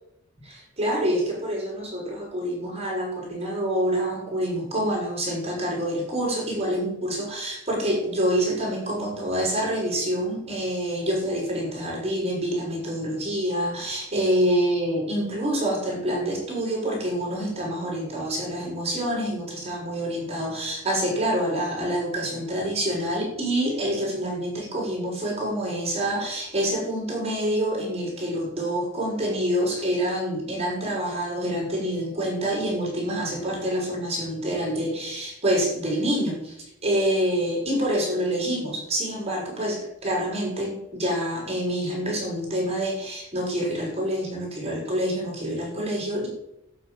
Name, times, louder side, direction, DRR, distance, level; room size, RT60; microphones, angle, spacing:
voice 1, 0.4-36.6 36.8-46.3, equal, 30° right, -2 dB, 6.4 m, -27 dB
11.5 x 6.7 x 9.4 m, 0.84 s
head